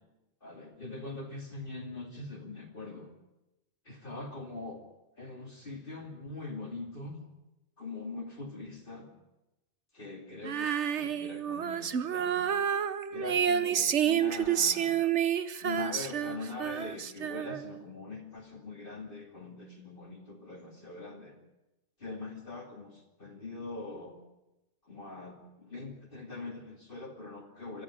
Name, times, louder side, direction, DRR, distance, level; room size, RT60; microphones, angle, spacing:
voice 1, 0.4-3.1 3.9-4.8 5.2-7.2 7.8-9.1 9.9-12.5 13.1-15.0 15.6-21.4 22.0-24.1 24.9-27.8, left 3 dB, 45° left, 1 dB, 2.7 m, -42 dB
Female singing, 10.4-17.8, right 8 dB, 70° right, 1.3 m, -29 dB
24.5 x 13.5 x 10.0 m, 0.97 s
omnidirectional pair, 1.2 m